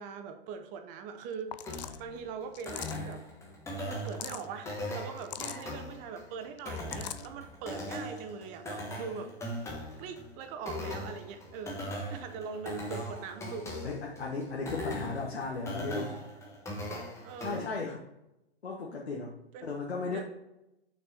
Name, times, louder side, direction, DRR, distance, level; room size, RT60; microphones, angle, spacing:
voice 1, 0.0-3.2 3.8-9.3 10.0-13.9 17.2-17.6 19.5-19.8 20.1-20.2, right 6 dB, 25° right, 8 dB, 0.8 m, -42 dB
sound 1, 1.2-1.3 1.5-2.0 2.5-3.1 3.9-4.5 5.2-5.6 6.6-7.3, left 11 dB, 45° left, 0.5 m, -41 dB
sound 2, 1.7-17.7, left 1 dB, 10° left, 1.2 m, -40 dB
voice 2, 13.8-16.2 17.4-18.0 18.6-19.3 19.6-20.2, left 3 dB, 80° left, -1 dB, 1.4 m, -35 dB
6.1 x 6.0 x 4.2 m, 0.89 s
hypercardioid pair, 125°, 32 cm